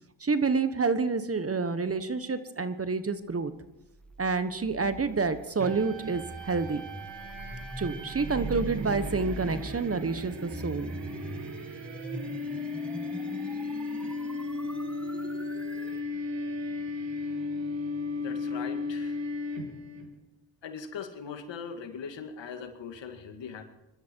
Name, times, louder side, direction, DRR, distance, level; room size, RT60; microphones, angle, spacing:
voice 1, 0.2-3.5 4.2-6.8 7.8-10.9, right 4 dB, 30° right, 12 dB, 1.2 m, -28 dB
sound 1, 3.9-16.0, equal, ahead, 1.6 m, -42 dB
sound 2, 5.6-20.1, left 2 dB, 70° right, 2.7 m, -36 dB
voice 2, 18.2-19.2 20.6-23.6, left 6 dB, 70° left, 6 dB, 2.1 m, -40 dB
24.0 x 12.5 x 4.6 m, 0.95 s
cardioid pair, 70°, 45 cm